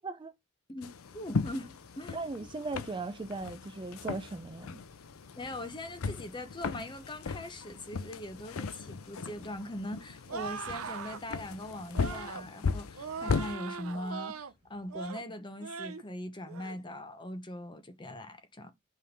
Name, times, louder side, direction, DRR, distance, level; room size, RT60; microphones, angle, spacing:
voice 1, 0.7-2.2 5.4-18.7, left 1 dB, 20° left, 0.8 m, -41 dB
sound 1, 0.8-13.6, left 4 dB, 75° left, 0.5 m, -37 dB
sound 2, 1.2-15.1, equal, 45° left, 2.7 m, -62 dB
voice 2, 2.1-4.8, right 3 dB, 20° right, 0.4 m, -38 dB
sound 3, 10.3-11.2 11.9-12.5 13.0-14.5 14.9-15.2 15.6-16.0 16.5-16.8, right 5 dB, 80° right, 0.7 m, -40 dB
5.5 x 3.2 x 5.3 m
head